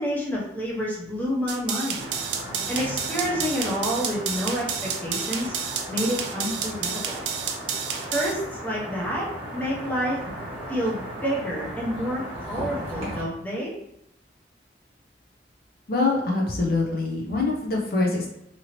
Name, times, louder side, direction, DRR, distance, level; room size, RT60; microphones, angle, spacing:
voice 1, 0.0-2.1 2.7-5.5 5.9-7.2 8.1-10.2 10.7-12.2 12.5-13.7, equal, 10° left, -5 dB, 0.7 m, -28 dB
sound 1, 1.5-8.3, right 7 dB, 75° right, 0.4 m, -30 dB
sound 2, 2.0-13.2, equal, 35° right, 1.2 m, -36 dB
voice 2, 15.9-18.3, left 3 dB, 55° left, -1 dB, 0.5 m, -24 dB
2.8 x 2.7 x 2.9 m, 0.81 s
head